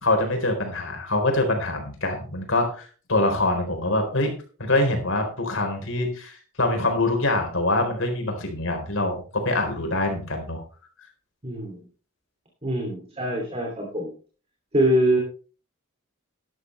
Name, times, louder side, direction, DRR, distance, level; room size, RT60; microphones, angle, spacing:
voice 1, 0.0-4.3 4.6-10.6, left 2 dB, 65° left, 4 dB, 4.1 m, -24 dB
voice 2, 11.4-11.8 12.6-14.1 14.7-15.2, right 1 dB, 30° right, 1 dB, 2.8 m, -23 dB
12.5 x 12.0 x 3.3 m, 0.38 s
head